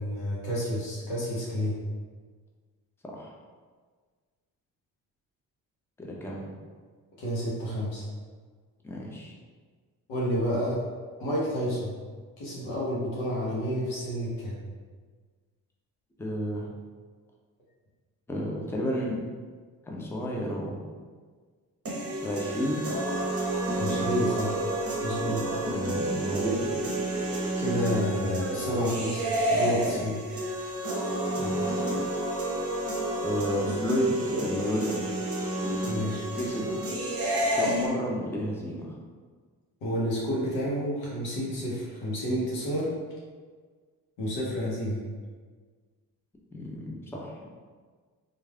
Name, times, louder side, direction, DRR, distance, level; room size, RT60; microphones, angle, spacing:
voice 1, 0.0-1.7 7.2-8.0 10.1-10.8 11.2-11.9 12.4-14.6 23.8-24.6 25.0-25.4 27.6-29.2 29.5-30.2 35.9-36.2 39.8-42.9 44.2-45.0, equal, 70° left, -6 dB, 1.0 m, -30 dB
voice 2, 6.0-6.5 8.8-9.3 16.2-16.7 18.3-19.2 19.9-20.8 22.2-22.8 25.2-25.4 25.7-26.7 31.4-31.7 33.2-35.0 36.3-36.7 37.5-38.9 46.5-47.6, equal, 5° left, -2 dB, 0.5 m, -31 dB
sound 1, 21.9-37.9, right 1 dB, 30° right, 0.8 m, -30 dB
3.1 x 2.4 x 2.3 m, 1.5 s
hypercardioid pair, 45°, 46 cm